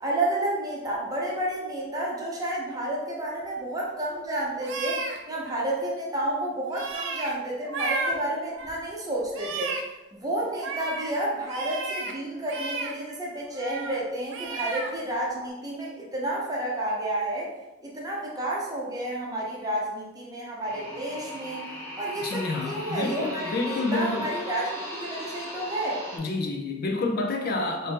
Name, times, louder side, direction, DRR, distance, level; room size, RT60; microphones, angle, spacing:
voice 1, 0.0-9.8 10.2-17.5 17.8-21.7 22.0-26.0, right 1 dB, 20° right, -4 dB, 0.6 m, -30 dB
sound 1, 4.6-5.2 6.7-7.3 7.6-8.1 8.5-8.8 9.2-9.8 10.4-11.1 11.5-12.1 12.4-12.9 13.5-14.0 14.3-14.9 15.3-15.5, right 3 dB, 85° right, 0.5 m, -33 dB
sound 2, 20.7-26.2, left 1 dB, 15° left, 0.7 m, -38 dB
voice 2, 22.2-24.3 26.1-27.9, left 2 dB, 50° left, 2 dB, 0.4 m, -29 dB
2.7 x 2.6 x 3.5 m, 1.1 s
head